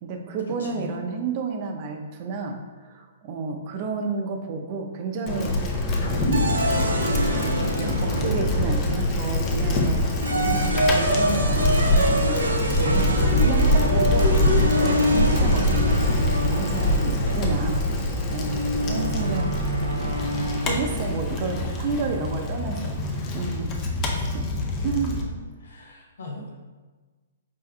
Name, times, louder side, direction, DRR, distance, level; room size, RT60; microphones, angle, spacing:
voice 1, 0.0-2.6 2.8-5.9 6.4-7.0 7.3-10.0 10.4-12.4 12.8-17.8 18.3-19.6 20.6-23.0 23.3-23.8 24.1-24.5 24.8-25.4, right 4 dB, 40° right, 4 dB, 0.5 m, -31 dB
voice 2, 0.6-0.9 10.5-10.7 18.9-19.7 25.6-26.5, left 2 dB, 70° left, 0 dB, 0.9 m, -37 dB
Bicycle, 5.3-25.2, left 1 dB, 30° left, 0.6 m, -24 dB
sound 1, 6.0-10.9, left 1 dB, 50° left, 1.4 m, -33 dB
sound 2, 6.3-8.9 10.0-21.1, equal, 85° right, 0.5 m, -27 dB
5.1 x 3.4 x 2.2 m, 1.3 s
figure-of-eight pair, 120°, 0 cm